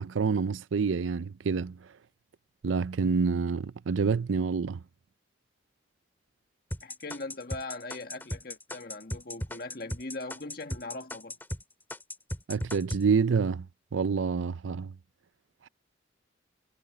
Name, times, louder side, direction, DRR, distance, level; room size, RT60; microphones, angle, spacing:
voice 1, 0.0-1.8 2.6-4.8 12.5-13.7 13.9-14.9, right 5 dB, 85° right, 0.5 m, -27 dB
sound 1, 6.7-11.6 11.9-13.0, left 1 dB, 10° left, 2.0 m, -36 dB
voice 2, 6.8-11.4, left 2 dB, 50° left, 1.5 m, -40 dB
head